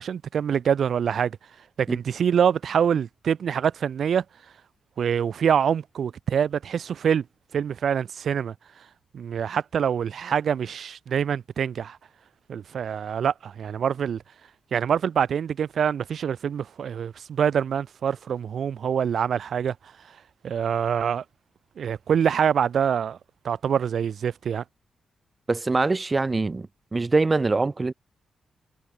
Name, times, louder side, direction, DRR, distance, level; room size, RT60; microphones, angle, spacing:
voice 1, 0.0-1.4 1.8-4.2 5.0-7.3 7.5-8.5 9.1-12.0 12.5-14.2 14.7-19.8 20.4-21.2 21.8-23.2 23.4-24.6, right 8 dB, 70° right, 3.9 m, -25 dB
voice 2, 25.5-27.9, right 3 dB, 35° right, 1.4 m, -24 dB
cardioid pair, 65°, 0 cm